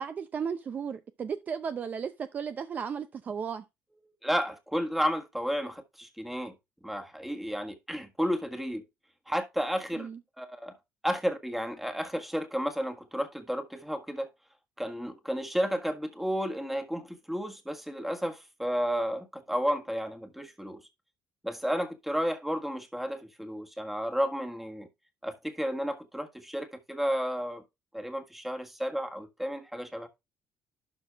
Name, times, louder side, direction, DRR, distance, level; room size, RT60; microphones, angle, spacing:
voice 1, 0.0-3.6 10.0-10.2, right 6 dB, 40° right, 0.6 m, -35 dB
voice 2, 4.2-6.5 6.8-8.8 9.3-10.1 10.4-10.8 11.0-14.3 14.8-20.8 21.4-24.9 25.2-27.6 27.9-30.1, equal, 5° right, 1.5 m, -32 dB
12.0 x 4.4 x 3.4 m
cardioid pair, 120°, 5 cm